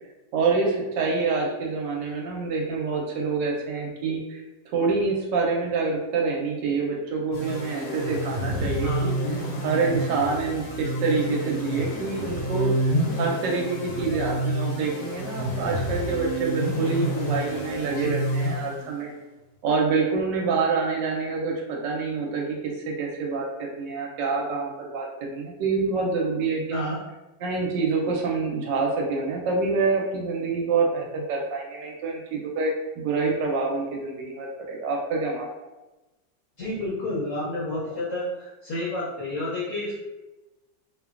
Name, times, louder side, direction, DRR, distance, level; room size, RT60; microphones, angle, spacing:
voice 1, 0.3-4.4 4.7-9.1 9.6-19.1 19.6-22.6 22.9-26.9 27.4-35.5, right 4 dB, 75° right, -1 dB, 1.2 m, -26 dB
sound 1, 7.3-19.1, right 1 dB, 90° left, 1.4 m, -29 dB
voice 2, 36.6-39.9, left 1 dB, 60° left, -7 dB, 0.8 m, -30 dB
3.0 x 2.2 x 2.4 m, 1.1 s
omnidirectional pair, 2.0 m